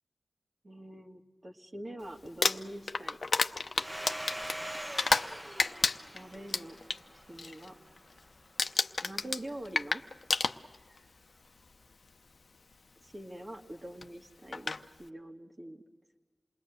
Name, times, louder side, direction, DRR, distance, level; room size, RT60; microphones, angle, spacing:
voice 1, 0.6-3.2 6.1-6.8 7.1-7.8 9.0-10.0 13.0-14.7 15.0-15.8, right 1 dB, 45° right, 2 dB, 2.0 m, -44 dB
Crumpling crinkling, 2.2-5.3 5.6-7.0 7.4-7.7 8.0-8.3 8.6-11.0 11.9-12.0 14.0-14.1 14.5-14.8, left 4 dB, 85° left, 0.7 m, -30 dB
Domestic sounds home sounds, 3.8-8.2, right 1 dB, 15° right, 1.2 m, -43 dB
28.0 x 20.5 x 8.0 m, 1.4 s
wide cardioid pair, 75°, 0 cm